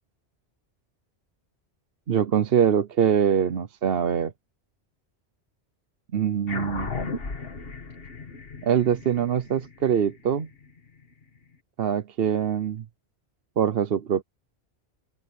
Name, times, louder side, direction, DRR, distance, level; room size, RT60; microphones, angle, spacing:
voice 1, 2.1-4.3 6.1-6.9 8.6-10.5 11.8-12.8 13.6-14.2, right 8 dB, 60° right, 1.0 m, -23 dB
sound 1, 6.5-11.2, left 4 dB, 55° left, 2.0 m, -36 dB
open air
omnidirectional pair, 1.1 m